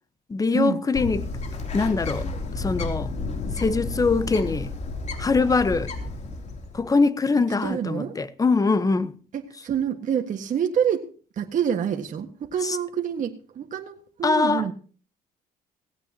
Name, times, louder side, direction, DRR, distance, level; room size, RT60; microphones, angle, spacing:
voice 1, 0.3-1.3 1.7-2.3 2.5-3.1 3.5-4.7 5.2-5.9 6.7-9.2 12.6-12.8 14.2-14.7, left 4 dB, 20° left, 1.0 m, -23 dB
Bird, 0.9-6.9, left 3 dB, 40° left, 3.1 m, -31 dB
voice 2, 7.6-8.2 9.3-11.1 11.4-14.7, right 8 dB, 50° right, 1.7 m, -27 dB
18.0 x 16.0 x 2.9 m
cardioid pair, 110°, 17 cm